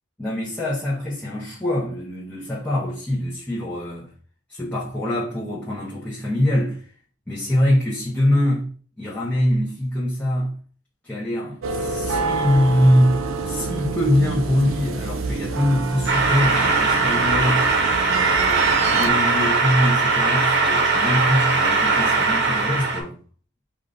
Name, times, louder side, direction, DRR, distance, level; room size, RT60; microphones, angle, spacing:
voice 1, 0.2-4.1 4.5-6.9 7.3-8.7 9.0-10.5 11.0-13.2 13.4-17.7 18.1-23.2, left 1 dB, 5° left, 1.1 m, -23 dB
sound 1, 11.6-19.1, right 4 dB, 75° right, 0.5 m, -27 dB
sound 2, 16.1-23.0, right 4 dB, 55° right, 1.0 m, -20 dB
5.1 x 2.6 x 3.9 m
head